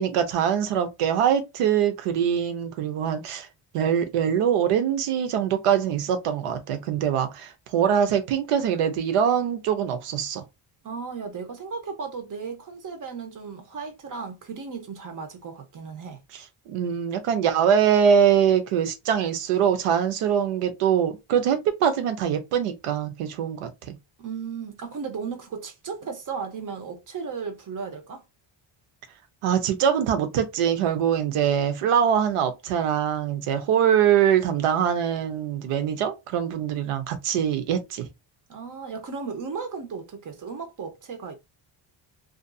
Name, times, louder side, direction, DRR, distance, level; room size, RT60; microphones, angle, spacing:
voice 1, 0.0-3.5 3.7-10.4 16.3-23.9 29.4-38.1, right 8 dB, 90° right, 0.7 m, -23 dB
voice 2, 10.8-16.2 24.2-28.2 38.5-41.3, right 5 dB, 40° right, 0.7 m, -35 dB
2.5 x 2.5 x 2.3 m
cardioid pair, 135°, 50 cm